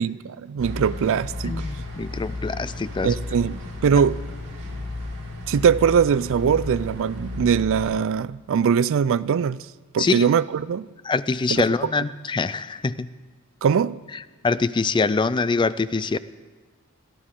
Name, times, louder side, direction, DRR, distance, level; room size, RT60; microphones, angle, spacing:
voice 1, 0.0-1.7 3.0-4.2 5.5-9.6 9.9-10.9 11.5-11.9 13.6-14.0, right 7 dB, 60° right, 0.4 m, -21 dB
sound 1, 0.6-7.9, left 2 dB, 75° right, 3.7 m, -33 dB
voice 2, 1.4-3.1 10.0-10.3 11.0-13.1 14.4-16.2, left 4 dB, 20° left, 0.4 m, -24 dB
22.5 x 14.5 x 3.8 m
head